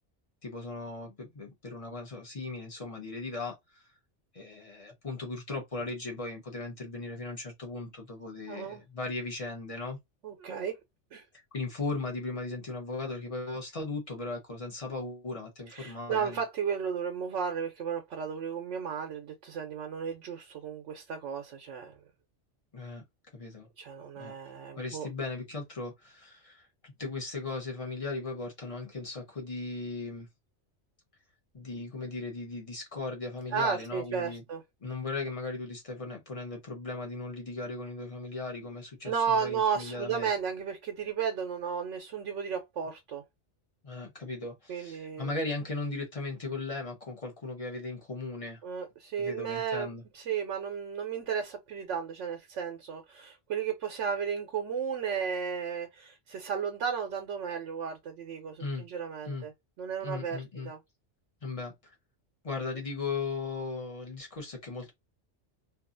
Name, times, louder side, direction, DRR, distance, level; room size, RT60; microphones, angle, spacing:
voice 1, 0.4-3.8 4.3-10.0 11.5-16.4 22.7-23.0 23.3-23.7 24.2-24.3 24.8-30.3 31.5-34.4 34.8-40.3 43.8-48.6 49.2-50.0 58.6-58.8 59.3-59.4 60.0-60.7 61.4-61.9 62.4-64.9, left 3 dB, 35° left, 0.8 m, -37 dB
voice 2, 8.5-8.8 10.2-10.8 11.1-11.2 15.7-22.0 23.8-25.1 33.5-34.6 39.0-43.2 44.7-45.3 48.6-49.9 50.1-59.5 59.8-60.8, right 7 dB, 85° right, 0.9 m, -34 dB
2.6 x 2.4 x 2.5 m
omnidirectional pair, 1.2 m